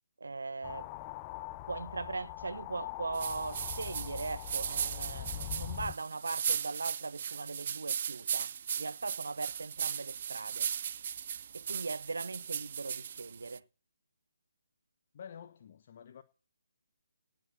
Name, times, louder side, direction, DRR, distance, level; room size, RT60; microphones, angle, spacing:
voice 1, 0.2-0.9 1.7-10.7 11.5-13.6, right 3 dB, 60° right, 1.1 m, -39 dB
sound 1, 0.6-6.0, left 15 dB, 20° left, 0.7 m, -42 dB
sound 2, 3.1-13.6, right 8 dB, 40° right, 0.7 m, -37 dB
voice 2, 15.1-16.2, left 8 dB, 35° left, 1.3 m, -49 dB
19.0 x 8.0 x 7.2 m
figure-of-eight pair, 145°, 0 cm